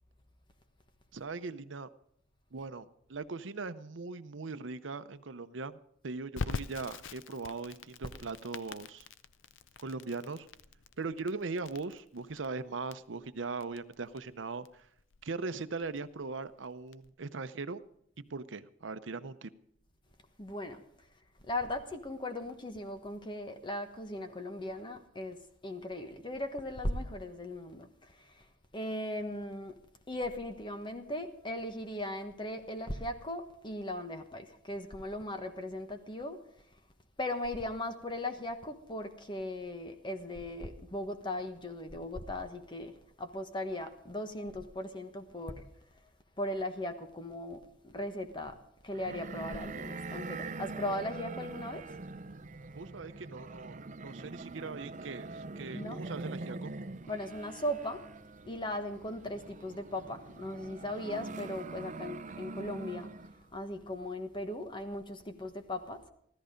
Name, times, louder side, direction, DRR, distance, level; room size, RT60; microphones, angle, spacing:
voice 1, 1.1-1.9 2.5-9.1 9.8-10.5 11.0-14.9 15.2-17.8 18.3-19.5 52.7-56.7, right 4 dB, 80° right, 0.7 m, -40 dB
Crackle, 6.4-17.1, left 4 dB, 85° left, 0.6 m, -45 dB
voice 2, 20.4-20.8 21.5-28.5 28.7-29.8 30.1-36.4 37.2-45.6 46.4-48.6 48.8-51.9 55.7-56.0 57.1-58.1 58.4-63.1 63.5-66.0, left 1 dB, 25° left, 1.2 m, -38 dB
sound 1, 48.9-63.4, right 3 dB, 40° right, 0.6 m, -43 dB
15.0 x 13.5 x 5.2 m
head